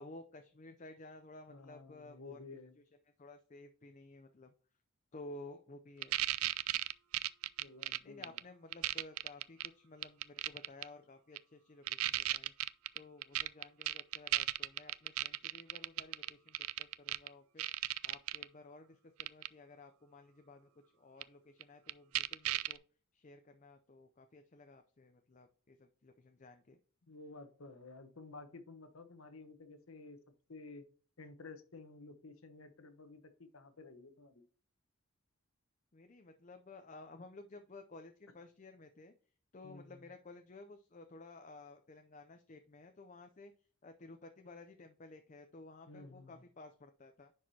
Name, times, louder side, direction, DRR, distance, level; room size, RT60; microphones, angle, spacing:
voice 1, 0.0-2.4 3.2-4.5 5.1-6.2 8.0-12.5 12.9-17.7 18.0-22.8 23.1-26.8 35.9-39.1 39.5-43.5 43.8-47.3, left 2 dB, 35° left, 6 dB, 0.5 m, -54 dB
voice 2, 1.5-2.8 7.6-8.4 27.1-30.2 30.5-30.8 31.2-34.4 39.6-40.0 45.9-46.4, left 3 dB, 70° left, 9 dB, 1.0 m, -53 dB
sound 1, 6.0-8.4 8.7-9.7 10.0-10.8 11.4-11.5 11.9-17.3 17.6-18.4 19.2-19.5 21.2-21.3 21.6-21.7 21.9-22.8, right 15 dB, 75° right, 0.3 m, -35 dB
10.0 x 4.7 x 2.8 m, 0.43 s
head